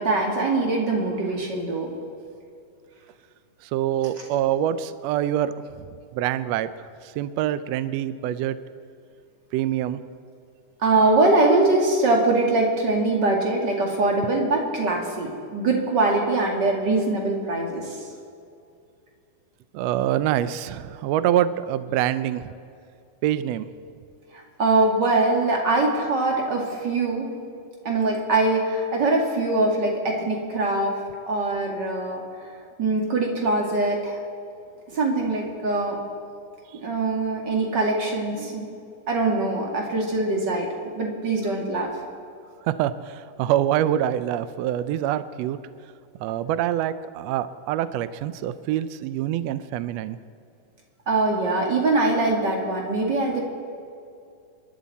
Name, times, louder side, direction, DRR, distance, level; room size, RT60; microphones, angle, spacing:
voice 1, 0.0-1.9 10.8-18.0 24.6-27.3 27.8-30.9 31.3-32.2 32.8-34.2 34.9-36.0 36.8-38.7 39.1-40.7 41.0-41.9 51.1-53.4, right 2 dB, 35° right, 0 dB, 2.3 m, -22 dB
voice 2, 3.7-5.8 6.1-6.7 7.2-8.6 9.5-10.0 19.7-22.5 23.2-23.7 42.6-45.6 46.2-50.2, right 11 dB, 85° right, 13 dB, 1.4 m, -25 dB
28.0 x 11.5 x 4.2 m, 2.4 s
omnidirectional pair, 3.7 m